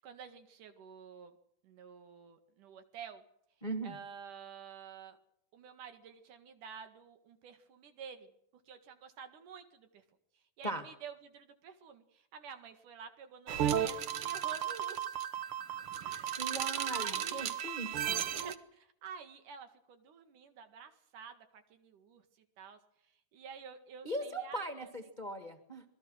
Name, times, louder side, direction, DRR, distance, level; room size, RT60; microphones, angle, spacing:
voice 1, 0.0-1.4 1.6-3.2 3.8-5.2 5.5-8.3 8.7-10.0 10.3-15.2 16.0-16.4 16.9-17.6 18.2-24.9, right 7 dB, 80° right, 8 dB, 3.5 m, -50 dB
voice 2, 3.6-4.0 10.6-10.9 16.4-18.2 24.0-25.8, right 1 dB, 20° left, 6 dB, 1.3 m, -39 dB
sound 1, 13.5-18.5, right 10 dB, 55° right, 1.7 m, -34 dB
26.5 x 20.0 x 6.4 m, 0.75 s
omnidirectional pair, 3.6 m